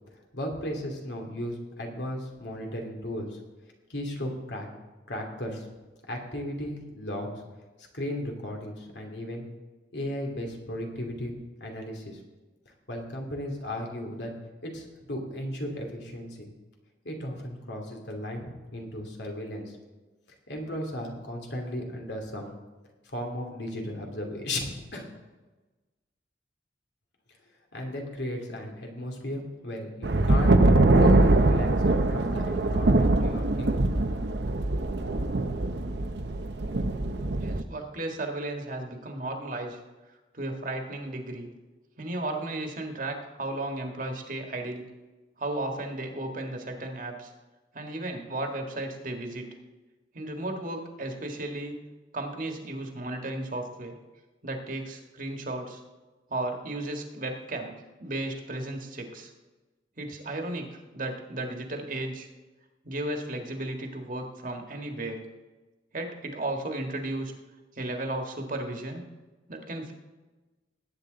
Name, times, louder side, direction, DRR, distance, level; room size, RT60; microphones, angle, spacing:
voice 1, 0.3-3.4 3.9-4.7 5.1-5.6 6.1-7.4 7.9-9.4 9.9-12.2 12.9-14.3 14.6-16.5 17.0-19.8 20.5-22.6 23.0-24.6 24.9-25.1 27.7-30.6 31.0-33.8, left 1 dB, 75° left, 1 dB, 2.7 m, -35 dB
sound 1, 30.0-37.6, right 2 dB, 70° right, 0.8 m, -23 dB
voice 2, 37.4-39.8 40.3-41.5 42.0-44.8 45.4-47.3 47.7-49.5 50.1-51.8 52.1-53.9 54.4-55.8 56.3-59.3 60.0-62.3 62.8-65.2 65.9-67.3 67.7-69.0 69.5-69.9, right 2 dB, 50° right, 3 dB, 1.7 m, -34 dB
19.0 x 8.9 x 3.9 m, 1.2 s
head